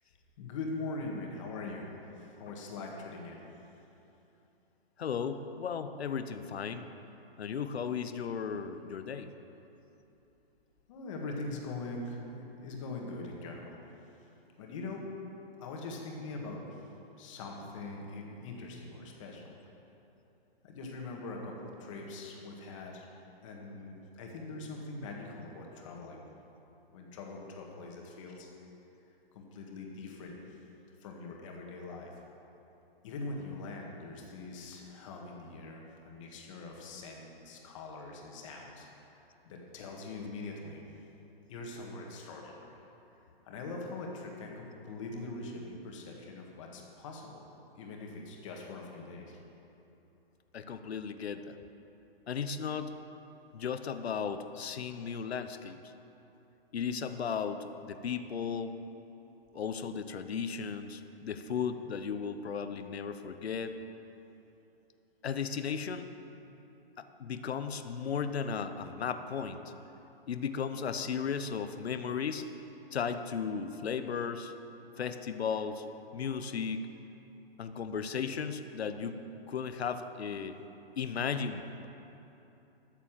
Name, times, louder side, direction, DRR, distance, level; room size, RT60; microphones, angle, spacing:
voice 1, 0.4-3.4 10.9-13.8 14.6-15.1 15.6-16.9 17.2-19.5 20.6-23.1 23.4-26.2 26.9-28.5 29.3-30.6 31.0-32.1 33.0-40.8 41.5-42.8 43.4-47.4 47.8-49.4, left 3 dB, 30° left, 0 dB, 1.8 m, -42 dB
voice 2, 5.0-6.9 7.4-9.3 50.5-51.6 52.3-52.9 53.5-55.8 56.7-58.8 59.5-63.8 65.2-66.1 67.0-69.6 70.3-72.5 72.9-74.5 75.0-75.9 76.1-76.8 77.6-80.6 81.0-81.9, left 6 dB, 90° left, 9 dB, 0.9 m, -35 dB
13.0 x 7.1 x 7.4 m, 3.0 s
hypercardioid pair, 165°, 31 cm